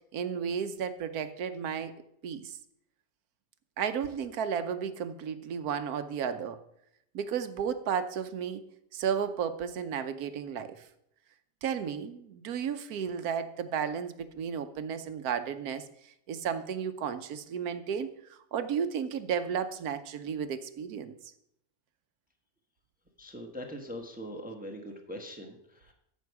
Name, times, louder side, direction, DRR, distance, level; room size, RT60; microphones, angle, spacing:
voice 1, 0.1-1.9 2.2-2.6 3.8-6.6 7.1-8.6 8.9-10.8 11.6-15.9 16.3-21.1, right 7 dB, 75° right, 11 dB, 1.2 m, -33 dB
voice 2, 23.2-25.9, equal, 5° right, 3 dB, 1.0 m, -42 dB
14.0 x 6.3 x 4.7 m, 0.75 s
omnidirectional pair, 1.7 m